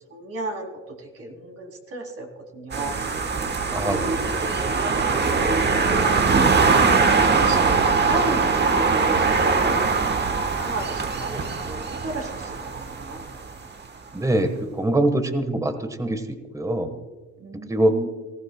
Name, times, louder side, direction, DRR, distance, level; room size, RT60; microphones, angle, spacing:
voice 1, 0.1-2.3 2.5-3.0 3.7-9.8 10.4-13.3 17.4-18.1, right 2 dB, 50° right, 2 dB, 3.1 m, -33 dB
Cars Passing Overhead, 2.7-13.5, right 4 dB, 35° right, 1.2 m, -22 dB
voice 2, 14.1-16.2 16.5-16.9 17.7-18.0, right 1 dB, 10° right, 8 dB, 1.2 m, -23 dB
19.5 x 14.5 x 2.2 m, 1.3 s
cardioid pair, 90°, 30 cm